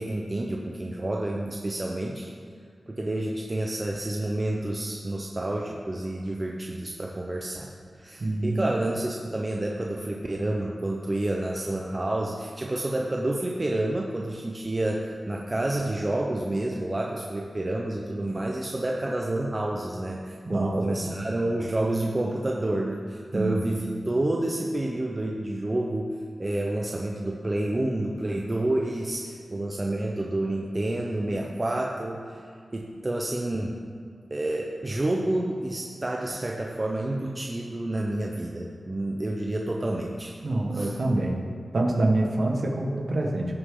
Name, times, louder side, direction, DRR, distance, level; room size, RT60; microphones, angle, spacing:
voice 1, 0.0-2.3 2.9-7.7 8.0-26.1 26.4-32.4 32.7-33.8 34.3-40.3 40.7-41.0, right 1 dB, 25° right, -1 dB, 0.7 m, -29 dB
voice 2, 8.2-8.7 20.4-21.0 23.3-23.8 40.4-41.4 41.7-43.6, right 2 dB, 55° right, 0 dB, 1.3 m, -26 dB
17.0 x 6.7 x 3.8 m, 2.1 s
wide cardioid pair, 115°, 0 cm